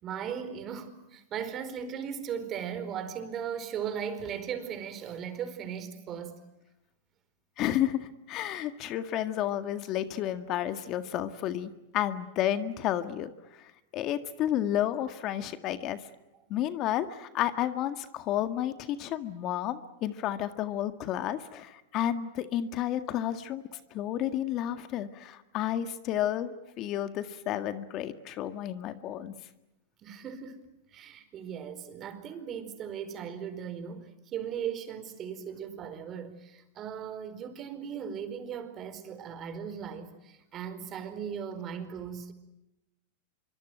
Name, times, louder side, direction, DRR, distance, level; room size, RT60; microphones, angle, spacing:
voice 1, 0.0-6.4 23.7-23.8 30.0-30.6 30.9-42.3, right 8 dB, 35° right, 4.6 m, -38 dB
voice 2, 7.6-16.1 16.5-23.6 23.9-29.4, left 11 dB, 40° left, 1.8 m, -31 dB
26.0 x 24.0 x 9.3 m
hypercardioid pair, 120°, 0 cm